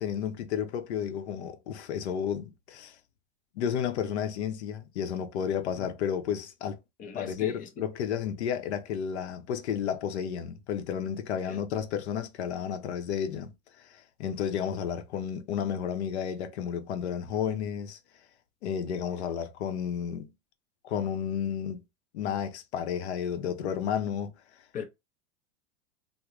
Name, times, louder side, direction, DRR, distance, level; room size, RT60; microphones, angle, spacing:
voice 1, 0.0-3.0 3.6-6.8 7.1-13.5 13.9-18.0 18.6-20.3 20.8-21.8 22.1-24.3, left 8 dB, 85° left, 0.7 m, -32 dB
voice 2, 7.0-7.8 11.4-11.6 19.2-19.3 24.7-24.8, left 6 dB, 25° left, 0.6 m, -40 dB
3.6 x 2.1 x 3.0 m
supercardioid pair, 140°, 33 cm